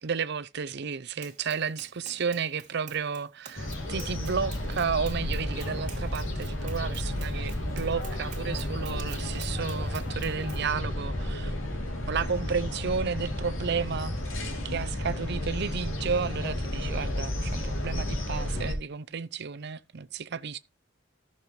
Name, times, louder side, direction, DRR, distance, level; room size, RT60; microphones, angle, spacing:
voice 1, 0.0-11.5 12.1-14.1 14.6-20.6, right 6 dB, 55° right, 0.6 m, -32 dB
Run, 1.2-10.7, right 6 dB, 40° right, 2.7 m, -48 dB
sound 1, 3.5-18.7, left 1 dB, 80° left, 2.8 m, -32 dB
14.5 x 6.7 x 3.1 m
head